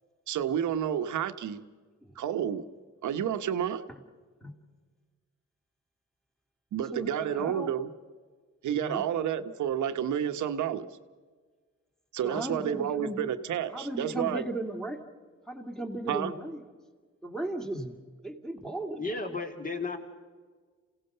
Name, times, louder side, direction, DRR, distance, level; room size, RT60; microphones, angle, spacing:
voice 1, 0.3-1.6 2.2-2.6 3.0-3.8 6.7-7.9 8.6-10.9 12.1-14.5 16.1-16.3, right 9 dB, 75° right, 9 dB, 1.1 m, -30 dB
voice 2, 6.9-7.7 8.7-9.0 12.2-13.2 13.7-15.0 15.5-16.6 17.2-18.0 18.2-19.0, right 1 dB, ahead, 4 dB, 2.4 m, -36 dB
voice 3, 19.0-20.0, left 3 dB, 25° left, 5 dB, 2.7 m, -33 dB
28.0 x 17.0 x 6.8 m, 1.5 s
cardioid pair, 115°, 30 cm